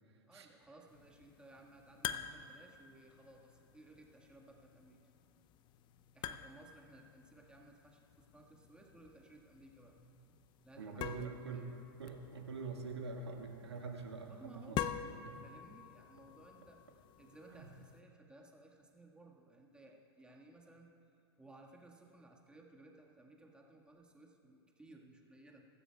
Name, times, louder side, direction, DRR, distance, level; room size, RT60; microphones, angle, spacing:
voice 1, 0.3-5.0 6.1-11.8 14.3-16.8 17.2-20.9 21.4-25.6, right 2 dB, 5° right, -1 dB, 1.7 m, -59 dB
sound 1, 0.9-18.0, left 10 dB, 35° left, 0.6 m, -48 dB
voice 2, 10.8-11.7 12.0-14.8 15.2-15.3 17.5-17.7, right 4 dB, 80° right, 1 dB, 1.9 m, -45 dB
23.5 x 12.5 x 2.4 m, 2.5 s
hypercardioid pair, 100°, 14 cm